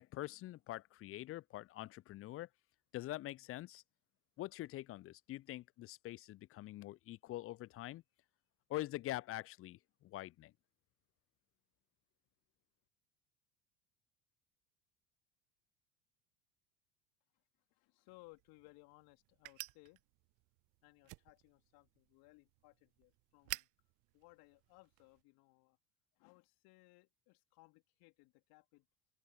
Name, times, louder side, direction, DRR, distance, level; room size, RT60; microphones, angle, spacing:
voice 1, 0.0-2.5 2.9-3.8 4.4-8.0 8.7-10.5, left 16 dB, 30° left, 0.6 m, -45 dB
voice 2, 17.7-20.0 20.8-23.7 24.1-25.8 26.1-28.9, left 26 dB, 55° left, 3.4 m, -64 dB
sound 1, 18.1-25.2, right 25 dB, 45° right, 0.7 m, -53 dB
open air
figure-of-eight pair, 70°, 44 cm